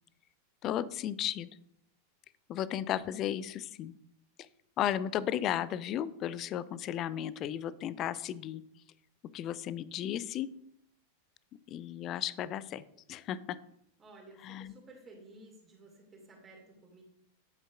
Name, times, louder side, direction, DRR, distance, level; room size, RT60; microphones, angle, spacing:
voice 1, 0.6-1.5 2.5-3.9 4.4-4.5 4.8-8.6 9.3-10.5 11.7-13.4 14.4-14.7, left 11 dB, 35° left, 18 dB, 0.4 m, -34 dB
voice 2, 14.0-17.0, right 2 dB, 20° right, -1 dB, 2.4 m, -54 dB
10.5 x 8.1 x 2.5 m, 0.72 s
figure-of-eight pair, 90°, 0 cm